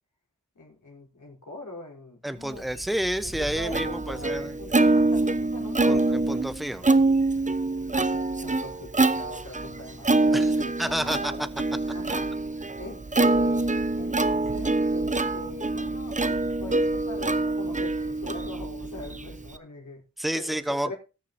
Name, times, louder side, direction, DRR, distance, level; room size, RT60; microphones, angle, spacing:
voice 1, 0.5-2.9 3.2-6.1 7.9-11.5 11.9-12.3 12.8-20.0 20.4-20.9, left 2 dB, 75° left, -1 dB, 4.5 m, -42 dB
voice 2, 2.2-4.6 5.9-6.9 10.3-10.5 10.8-11.3 20.2-20.9, right 1 dB, ahead, 12 dB, 1.1 m, -29 dB
Plucked string instrument, 2.8-19.6, right 2 dB, 25° right, 0.8 m, -25 dB
19.5 x 6.7 x 2.8 m, 0.30 s
cardioid pair, 50°, 31 cm